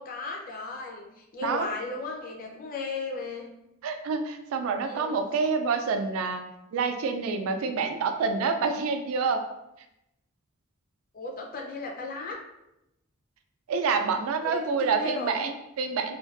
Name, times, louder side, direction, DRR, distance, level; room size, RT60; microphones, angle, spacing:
voice 1, 0.0-3.5 4.8-5.2 11.1-12.4 14.4-15.5, left 3 dB, 40° left, 0 dB, 0.4 m, -36 dB
voice 2, 3.8-6.4 6.7-9.4 13.7-16.2, right 5 dB, 75° right, 6 dB, 0.3 m, -27 dB
2.5 x 2.2 x 2.4 m, 0.87 s
head